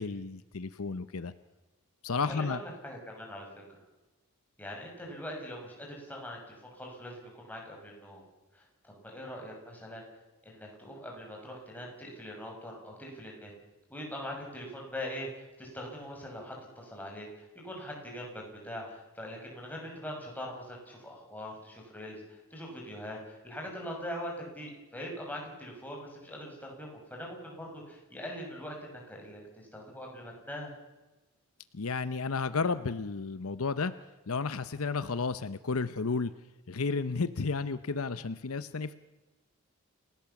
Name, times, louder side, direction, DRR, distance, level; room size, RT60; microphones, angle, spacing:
voice 1, 0.0-1.3 2.0-2.6 31.7-33.9 34.3-36.3 36.7-38.9, left 4 dB, 75° left, 13 dB, 0.8 m, -32 dB
voice 2, 2.1-3.5 4.6-8.2 8.5-10.0 10.4-13.5 13.9-30.7, equal, 10° left, -1 dB, 6.4 m, -42 dB
29.0 x 17.0 x 7.2 m, 1.1 s
head